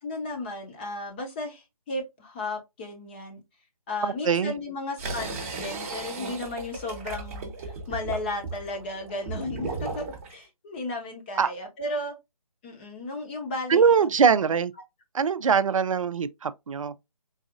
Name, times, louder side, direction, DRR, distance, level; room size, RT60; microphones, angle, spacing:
voice 1, 0.0-3.4 3.9-12.1 12.6-14.1, left 2 dB, 15° left, 0.7 m, -34 dB
voice 2, 4.0-4.5 11.4-11.5 13.7-14.7 15.1-16.9, right 6 dB, 60° right, 0.4 m, -22 dB
sound 1, 5.0-10.3, right 3 dB, 25° right, 0.8 m, -35 dB
4.0 x 2.5 x 2.4 m
figure-of-eight pair, 150°, 19 cm